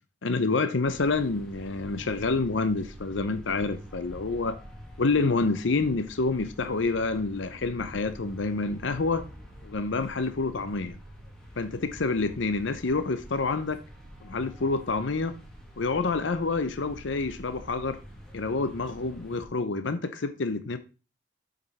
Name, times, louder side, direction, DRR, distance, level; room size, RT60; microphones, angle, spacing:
voice 1, 0.2-4.6 5.0-9.3 9.6-11.0 11.6-13.8 14.2-15.4 15.8-18.0 18.3-20.8, left 3 dB, 75° left, 0.7 m, -28 dB
sound 1, 0.8-19.4, equal, ahead, 1.7 m, -47 dB
7.7 x 5.2 x 4.1 m
head